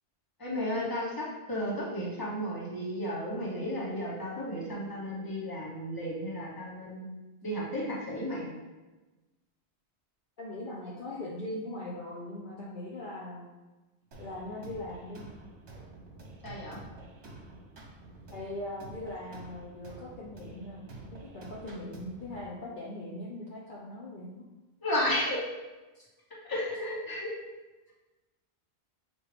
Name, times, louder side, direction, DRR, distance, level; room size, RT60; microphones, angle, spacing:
voice 1, 0.4-7.0 7.4-8.4 16.4-16.8 24.8-25.4 26.4-27.3, equal, 20° left, -5 dB, 1.0 m, -33 dB
voice 2, 10.4-13.5 14.2-15.4 18.3-24.3 25.9-26.1, left 1 dB, 55° left, -4 dB, 0.8 m, -40 dB
sound 1, 14.1-22.5, right 2 dB, 75° right, 1.1 m, -49 dB
6.0 x 2.5 x 3.3 m, 1.1 s
omnidirectional pair, 1.1 m